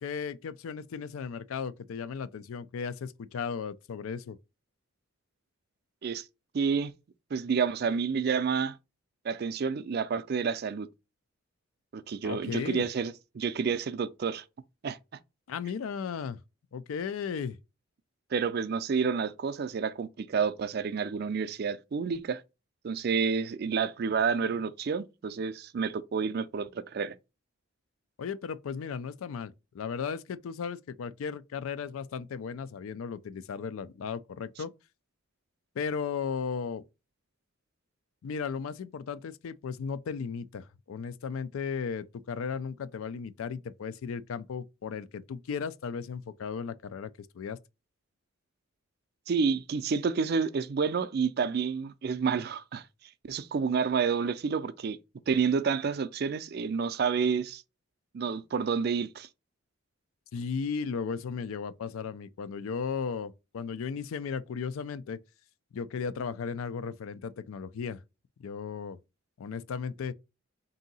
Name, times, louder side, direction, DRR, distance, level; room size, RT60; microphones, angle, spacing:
voice 1, 0.0-4.4 12.2-12.9 15.5-16.4 16.7-17.6 28.2-34.7 35.8-36.8 38.2-47.6 60.3-65.2 65.7-68.0 68.4-69.0 69.4-70.1, left 6 dB, 85° left, 0.4 m, -35 dB
voice 2, 6.5-6.9 7.3-8.8 9.2-10.9 11.9-14.4 14.8-15.0 18.3-22.4 22.8-27.2 49.3-52.8 53.2-55.0 55.3-57.6 58.1-59.3, right 5 dB, 50° right, 0.4 m, -29 dB
3.6 x 2.7 x 4.0 m
head